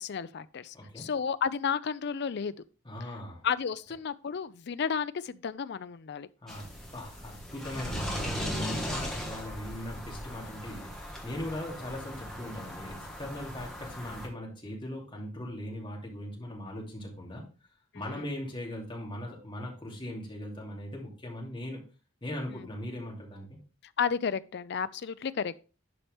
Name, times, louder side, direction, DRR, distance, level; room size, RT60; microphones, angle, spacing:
voice 1, 0.0-2.5 3.4-6.3 17.9-18.2 22.5-22.7 24.0-25.6, left 6 dB, 55° left, 0.4 m, -32 dB
voice 2, 0.7-1.1 2.8-3.4 6.4-6.7 6.9-17.4 17.9-21.8 22.2-23.6, left 1 dB, 25° left, 2.5 m, -39 dB
sound 1, 6.5-14.3, equal, ahead, 1.5 m, -38 dB
11.0 x 4.5 x 3.3 m
head